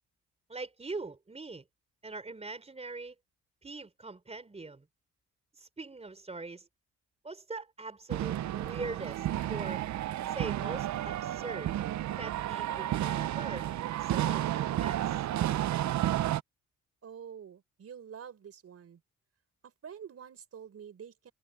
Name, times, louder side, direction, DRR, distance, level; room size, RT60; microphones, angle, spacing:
voice 1, 0.5-1.6 2.0-3.2 3.6-4.9 5.6-6.7 7.2-9.8 10.3-11.7 12.2-13.7 14.0-15.2, right 3 dB, 20° right, 4.1 m, -42 dB
sound 1, 8.1-16.4, right 13 dB, 70° right, 0.8 m, -32 dB
voice 2, 17.0-19.0 19.6-21.3, right 8 dB, 50° right, 4.7 m, -47 dB
cardioid pair, 90°, 30 cm